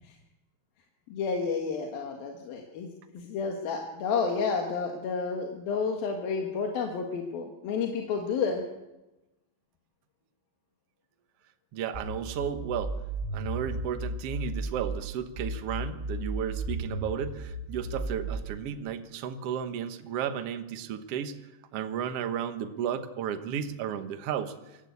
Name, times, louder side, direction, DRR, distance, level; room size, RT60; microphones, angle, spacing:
voice 1, 1.1-2.9 3.2-8.6, left 5 dB, 80° left, 3 dB, 3.5 m, -30 dB
voice 2, 11.7-13.0 13.3-21.4 21.7-24.5, right 8 dB, 60° right, 8 dB, 1.7 m, -33 dB
sound 1, 11.9-15.0 15.4-18.4, right 2 dB, 30° right, 4.4 m, -34 dB
24.5 x 14.0 x 8.3 m, 1.0 s
omnidirectional pair, 4.2 m